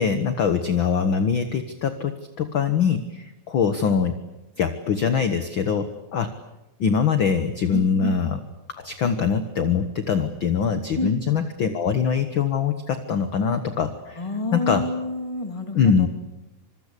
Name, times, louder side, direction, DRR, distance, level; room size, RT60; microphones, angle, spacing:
voice 1, 0.0-4.2 4.6-6.4 6.8-8.4 8.7-14.9 15.7-16.1, left 6 dB, 50° left, 9 dB, 1.7 m, -23 dB
voice 2, 7.7-8.2 11.0-11.2 14.2-16.1, left 2 dB, 10° left, 6 dB, 2.5 m, -28 dB
26.0 x 23.5 x 8.4 m, 0.98 s
omnidirectional pair, 3.5 m